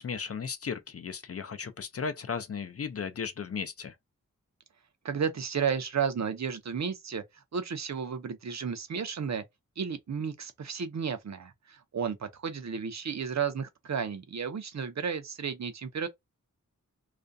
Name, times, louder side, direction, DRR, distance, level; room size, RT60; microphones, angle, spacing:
voice 1, 0.0-3.9, left 6 dB, 45° left, 0.4 m, -35 dB
voice 2, 5.0-9.4 9.8-16.1, right 6 dB, 55° right, 0.6 m, -33 dB
2.4 x 2.2 x 2.5 m
wide cardioid pair, 75°, 32 cm